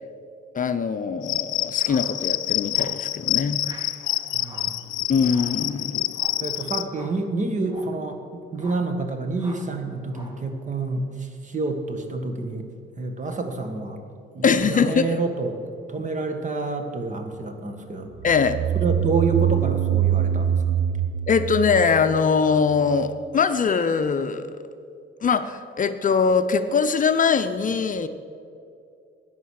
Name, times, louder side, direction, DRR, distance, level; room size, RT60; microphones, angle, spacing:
voice 1, 0.5-3.6 5.1-6.0 14.4-15.2 18.2-18.6 21.3-24.4 25.2-28.1, left 5 dB, 40° left, 9 dB, 0.7 m, -22 dB
Cricket, 1.2-6.8, left 16 dB, 85° left, 0.5 m, -27 dB
sound 1, 1.8-2.2 2.7-3.1 3.6-4.0 4.4-4.8 5.3-5.6 6.1-6.5 6.9-7.2 7.6-8.0 8.5-8.9 9.4-9.7 10.1-10.5, equal, 20° right, 2.2 m, -45 dB
voice 2, 4.0-4.8 6.4-12.7 13.0-14.0 14.3-15.6 15.9-18.1 18.8-20.6, right 3 dB, 40° right, 6 dB, 1.8 m, -28 dB
sound 2, 18.2-22.8, right 10 dB, 70° right, 0.6 m, -24 dB
14.0 x 9.5 x 6.5 m, 2.5 s
cardioid pair, 90°, 20 cm